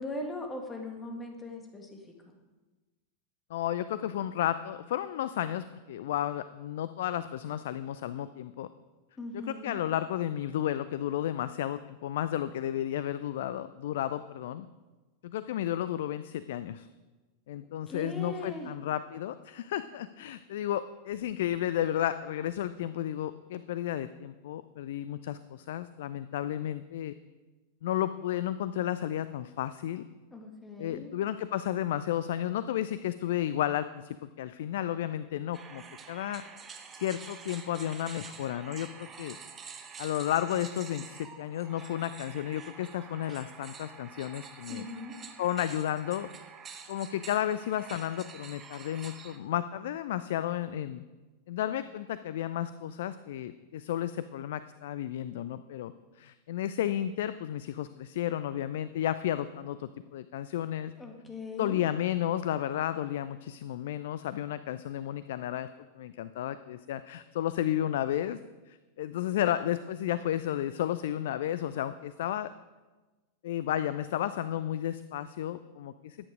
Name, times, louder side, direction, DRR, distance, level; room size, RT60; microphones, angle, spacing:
voice 1, 0.0-2.0 9.2-9.8 17.9-18.7 30.3-31.1 44.7-45.1 61.0-61.9, left 2 dB, 15° left, 2 dB, 1.9 m, -39 dB
voice 2, 3.5-8.7 9.5-14.7 15.2-16.9 17.5-27.1 27.8-30.1 30.8-36.4 36.9-39.4 40.0-44.9 45.4-46.3 46.9-51.0 51.5-60.9 61.6-65.7 65.9-68.4 68.7-72.5 73.4-76.2, left 11 dB, 55° left, 14 dB, 0.4 m, -32 dB
sound 1, 35.5-49.4, right 6 dB, 20° right, 1.2 m, -48 dB
14.0 x 9.3 x 5.0 m, 1.2 s
figure-of-eight pair, 90°, 0 cm